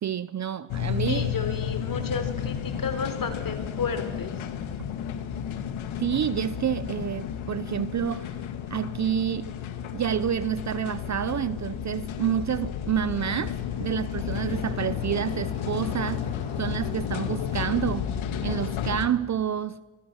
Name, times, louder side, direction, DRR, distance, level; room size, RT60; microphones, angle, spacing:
voice 1, 0.0-1.3 6.0-8.3 8.7-9.5 9.9-16.3 16.6-18.1 18.4-19.8, right 9 dB, 35° right, 0.6 m, -28 dB
sound 1, 0.7-19.1, left 9 dB, 70° left, 2.3 m, -32 dB
voice 2, 1.1-4.5, left 6 dB, 40° left, 3.9 m, -32 dB
sound 2, 12.9-18.0, left 2 dB, 15° left, 4.8 m, -46 dB
26.0 x 22.0 x 6.4 m
cardioid pair, 115°, 49 cm